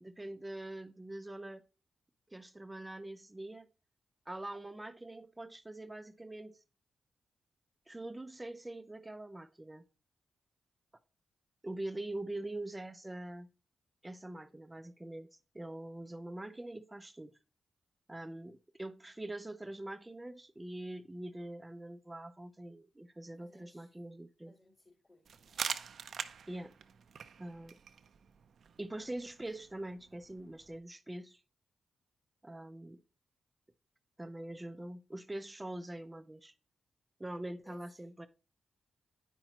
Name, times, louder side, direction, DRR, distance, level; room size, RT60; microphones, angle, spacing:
voice 1, 0.0-1.6 2.3-3.7 4.3-6.6 7.9-9.8 11.6-13.5 14.0-17.3 18.1-24.5 26.5-26.7 27.4-27.8 28.8-31.4 32.4-33.0 34.2-36.5 37.2-38.3, right 1 dB, 15° right, 0.5 m, -44 dB
voice 2, 23.4-23.9 24.5-25.6 37.6-37.9, left 2 dB, 40° left, 3.3 m, -61 dB
sound 1, 25.3-30.8, right 7 dB, 70° right, 0.5 m, -44 dB
9.0 x 5.7 x 2.9 m
cardioid pair, 60°, 0 cm